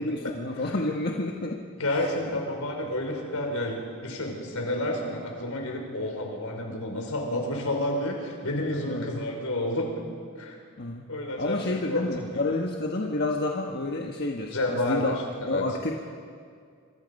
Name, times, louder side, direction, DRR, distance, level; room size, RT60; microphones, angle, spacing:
voice 1, 0.0-1.6 1.9-2.4 8.9-9.1 10.8-11.1 11.4-15.1 15.5-15.9, left 2 dB, 50° left, 0 dB, 1.4 m, -29 dB
voice 2, 1.8-9.9 10.4-10.6 11.1-12.2 14.5-15.1 15.4-15.6, left 1 dB, 75° left, 1 dB, 5.3 m, -30 dB
26.5 x 26.0 x 5.4 m, 2.2 s
head